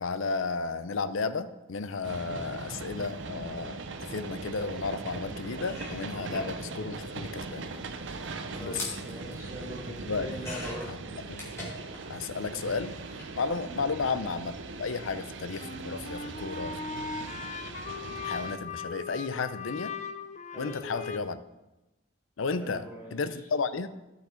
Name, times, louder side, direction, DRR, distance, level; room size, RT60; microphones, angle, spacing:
voice 1, 0.0-7.7 8.6-8.9 9.9-10.3 10.9-11.0 11.3-11.4 12.1-12.9 13.4-14.5 14.8-17.1 18.2-19.9 20.6-21.4 22.4-22.8 23.1-23.9, left 4 dB, 80° left, 12 dB, 0.6 m, -33 dB
sound 1, 2.0-18.6, right 3 dB, 70° right, 0.6 m, -40 dB
sound 2, 5.1-5.2 5.5-12.2 12.5-13.3 14.3-14.5 14.8-14.9, left 1 dB, 15° left, 2.3 m, -44 dB
voice 2, 8.5-11.0 13.6-13.9 20.5-20.7 22.6-23.4, equal, 15° right, -7 dB, 1.5 m, -42 dB
sound 3, 15.6-21.2, left 4 dB, 35° left, 0.5 m, -39 dB
13.0 x 5.7 x 4.4 m, 1.0 s
head